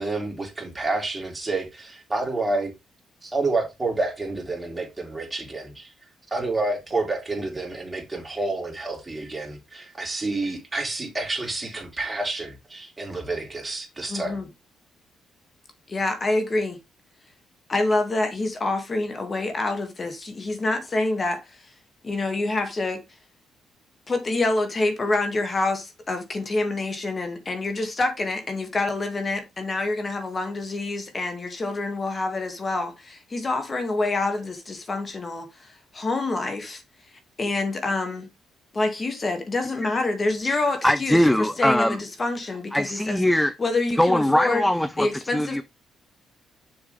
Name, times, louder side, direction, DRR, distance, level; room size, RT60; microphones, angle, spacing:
voice 1, 0.0-2.7 3.2-5.9 6.3-14.4, right 2 dB, 20° right, 3.6 m, -29 dB
voice 2, 14.1-14.5 15.9-16.8 17.7-21.4 22.0-23.0 24.1-35.5 35.9-36.8 37.4-38.3 38.7-43.2 43.6-44.7 45.0-45.6, left 2 dB, 30° left, 2.3 m, -26 dB
voice 3, 40.8-42.0 42.7-43.5 44.0-45.6, left 1 dB, 5° left, 0.5 m, -21 dB
7.1 x 6.8 x 3.5 m
cardioid pair, 90°, 0 cm